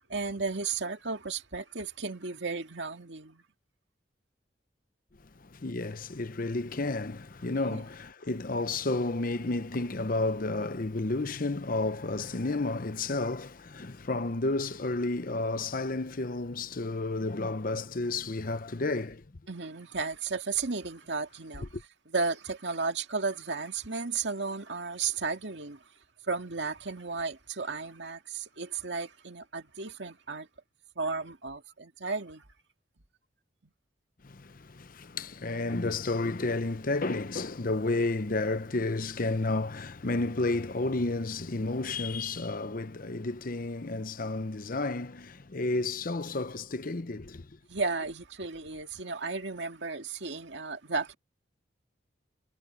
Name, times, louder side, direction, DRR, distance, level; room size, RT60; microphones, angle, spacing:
voice 1, 0.0-3.4 7.4-7.8 19.5-21.7 22.1-25.8 26.2-30.5 31.0-32.4 47.7-51.1, right 4 dB, 65° right, 2.1 m, -34 dB
voice 2, 5.5-19.2 34.2-47.5, left 2 dB, 50° left, 0.8 m, -31 dB
head